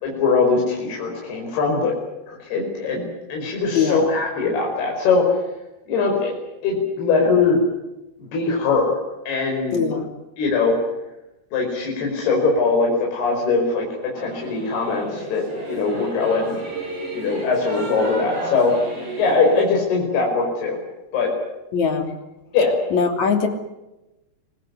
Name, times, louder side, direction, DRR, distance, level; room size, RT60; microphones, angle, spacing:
voice 1, 0.0-1.9 2.3-5.2 5.9-6.3 6.6-7.6 8.2-9.0 9.3-9.8 10.4-10.8 11.5-16.6 17.1-18.7 19.2-20.8 21.1-21.3 22.5-22.7, left 4 dB, 65° left, -1 dB, 7.2 m, -21 dB
voice 2, 3.7-4.1 9.7-10.1 21.7-22.1 22.9-23.5, left 6 dB, 45° left, 6 dB, 4.1 m, -21 dB
Singing / Musical instrument, 14.2-19.6, right 2 dB, 35° right, 8.3 m, -33 dB
28.0 x 20.5 x 9.6 m, 0.98 s
omnidirectional pair, 4.9 m